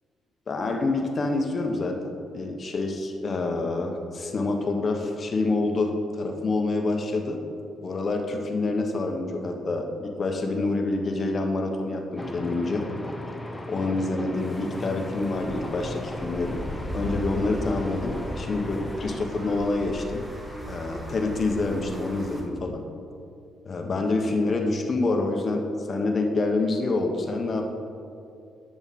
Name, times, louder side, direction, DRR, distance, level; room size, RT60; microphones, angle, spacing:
voice 1, 0.5-7.4 7.8-12.9 13.7-16.6 16.9-20.2 20.7-22.8 23.6-27.7, left 2 dB, 40° left, 3 dB, 1.1 m, -27 dB
sound 1, 12.2-19.3, left 1 dB, 10° left, 0.8 m, -36 dB
sound 2, 14.3-22.4, equal, 10° right, 1.8 m, -38 dB
11.0 x 6.1 x 4.2 m, 2.5 s
cardioid pair, 90°, 0 cm